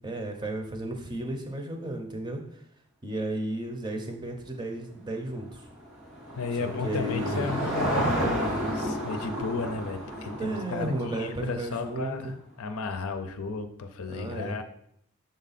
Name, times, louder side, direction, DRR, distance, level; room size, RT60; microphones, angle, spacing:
voice 1, 0.0-2.4 3.0-5.6 6.6-7.5 10.4-12.4 14.1-14.6, right 1 dB, 20° right, 3 dB, 0.6 m, -33 dB
Car passing by / Engine, 5.3-11.8, equal, 90° right, 2.3 m, -31 dB
voice 2, 6.4-14.6, left 4 dB, 75° left, 8 dB, 0.5 m, -34 dB
6.2 x 3.9 x 4.1 m, 0.71 s
head